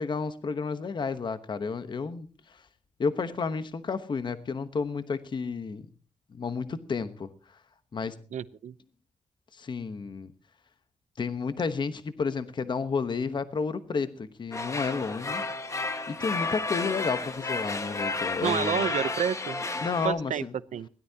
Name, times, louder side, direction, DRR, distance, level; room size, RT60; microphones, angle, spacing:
voice 1, 0.0-2.6 3.0-5.9 6.3-7.3 7.9-8.2 9.5-10.3 11.2-15.4 16.1-18.9 19.8-20.5, left 5 dB, 40° left, 12 dB, 1.0 m, -31 dB
voice 2, 8.3-8.7 18.4-19.6 20.0-20.4 20.7-20.9, right 8 dB, 90° right, 16 dB, 0.7 m, -29 dB
sound 1, 14.5-20.1, left 3 dB, 25° left, 1.5 m, -32 dB
21.0 x 17.0 x 2.8 m, 0.38 s
wide cardioid pair, 170°, 12 cm